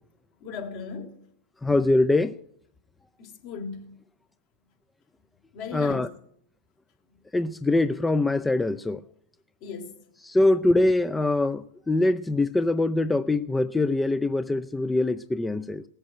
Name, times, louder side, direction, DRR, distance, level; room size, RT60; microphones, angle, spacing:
voice 1, 0.4-1.2 3.2-3.9 5.5-6.1 9.6-10.0, left 5 dB, 55° left, 3.3 m, -37 dB
voice 2, 1.6-2.3 5.7-6.1 7.3-9.0 10.2-15.8, left 2 dB, 10° left, 0.5 m, -23 dB
18.0 x 8.1 x 9.0 m
hypercardioid pair, 105°, 0 cm